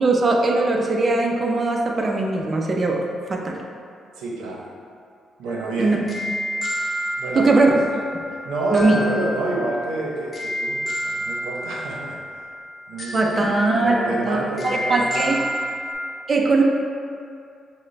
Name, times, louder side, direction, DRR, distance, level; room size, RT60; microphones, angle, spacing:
voice 1, 0.0-3.0 3.3-3.6 5.8-6.0 7.3-7.8 8.7-9.0 13.1-14.0 14.2-15.4 16.3-16.6, right 3 dB, 35° right, 0 dB, 0.5 m, -20 dB
voice 2, 4.2-4.7 5.4-6.0 7.2-7.8 8.4-12.2 12.9-13.6 13.8-15.5, right 2 dB, 90° right, -3 dB, 0.7 m, -28 dB
sound 1, 5.5-15.9, equal, 40° left, 0.8 m, -30 dB
6.2 x 2.1 x 3.2 m, 2.4 s
cardioid pair, 90°, 0 cm